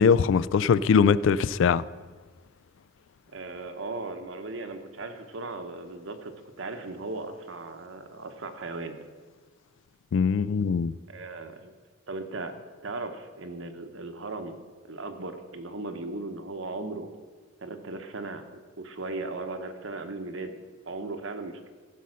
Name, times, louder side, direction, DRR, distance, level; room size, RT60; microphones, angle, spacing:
voice 1, 0.0-1.8 10.1-10.9, left 6 dB, 65° left, 0.3 m, -21 dB
voice 2, 3.3-9.0 11.1-11.7 12.1-12.5 12.8-14.6 14.9-17.1 17.6-20.6 20.9-21.7, right 3 dB, 65° right, 1.0 m, -37 dB
15.0 x 5.5 x 6.3 m
head